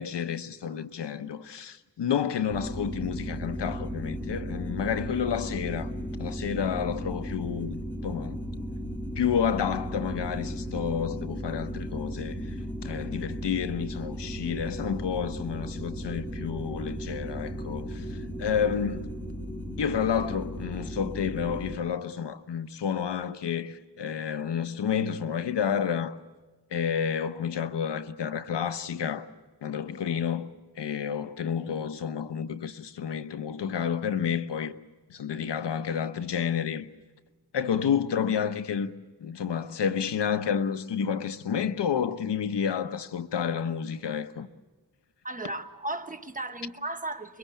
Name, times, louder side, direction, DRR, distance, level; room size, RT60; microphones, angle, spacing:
voice 1, 0.0-5.9 6.2-8.4 9.2-12.5 12.8-19.1 19.8-26.2 26.7-29.3 29.6-30.5 30.8-34.8 35.1-36.9 37.5-38.9 39.2-44.5, left 7 dB, 85° left, 1.0 m, -30 dB
sound 1, 2.5-21.8, equal, 5° left, 2.8 m, -35 dB
voice 2, 45.2-47.4, right 2 dB, 20° right, 1.1 m, -35 dB
25.5 x 23.0 x 8.4 m
wide cardioid pair, 120°, 41 cm